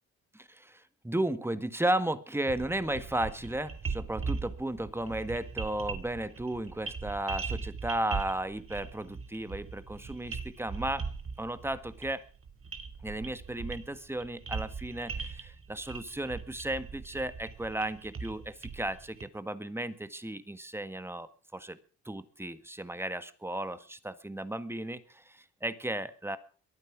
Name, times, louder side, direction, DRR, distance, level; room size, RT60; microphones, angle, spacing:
voice 1, 0.3-11.0 11.4-12.2 13.0-21.8 22.0-26.4, right 1 dB, 10° right, 13 dB, 1.6 m, -34 dB
sound 1, 2.5-19.2, right 5 dB, 45° right, 2.4 m, -40 dB
22.5 x 9.3 x 6.1 m, 0.41 s
cardioid pair, 90°, 30 cm